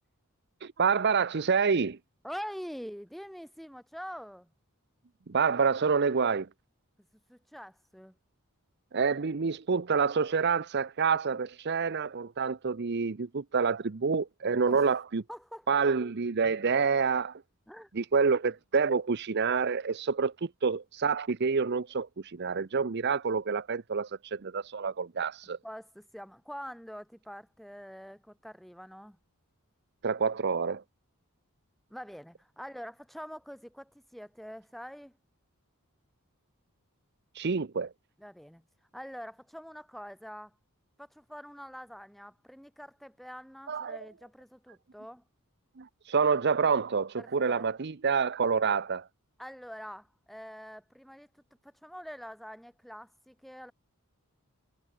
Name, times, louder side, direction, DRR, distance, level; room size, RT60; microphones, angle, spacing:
voice 1, 0.6-2.0 5.3-6.5 8.9-15.2 15.7-17.4 17.9-25.6 30.0-30.8 37.3-37.9 43.7-44.0 45.8-49.1, right 5 dB, 50° right, 0.7 m, -28 dB
voice 2, 2.2-4.5 7.3-8.1 14.7-15.0 15.3-15.8 17.7-17.9 25.6-29.2 31.9-35.2 38.2-38.7 38.9-40.5 41.0-45.2 47.2-47.7 49.4-53.7, equal, ahead, 3.2 m, -45 dB
head